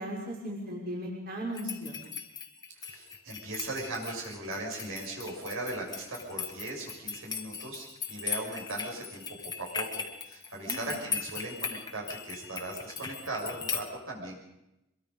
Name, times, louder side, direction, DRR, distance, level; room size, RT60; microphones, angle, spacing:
voice 1, 0.0-2.0 10.6-11.0, equal, 45° right, -3 dB, 5.8 m, -37 dB
sound 1, 1.5-13.8, left 6 dB, 20° left, 1.7 m, -39 dB
voice 2, 2.8-9.2 9.6-14.4, right 2 dB, 70° right, -2 dB, 6.7 m, -38 dB
24.5 x 23.0 x 5.5 m, 0.89 s
head